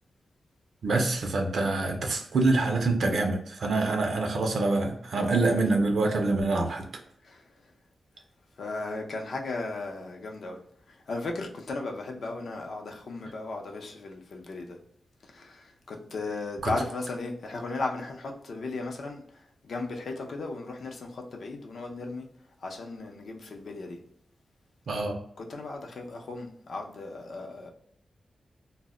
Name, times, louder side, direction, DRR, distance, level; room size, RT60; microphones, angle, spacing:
voice 1, 0.8-6.9 16.6-16.7 24.9-25.1, right 3 dB, 70° right, 0.4 m, -25 dB
voice 2, 8.6-10.6 11.1-14.8 15.3-19.2 19.6-22.3 22.6-24.0 25.4-27.7, left 3 dB, 65° left, 0.5 m, -36 dB
2.1 x 2.0 x 3.5 m
wide cardioid pair, 115°, 0 cm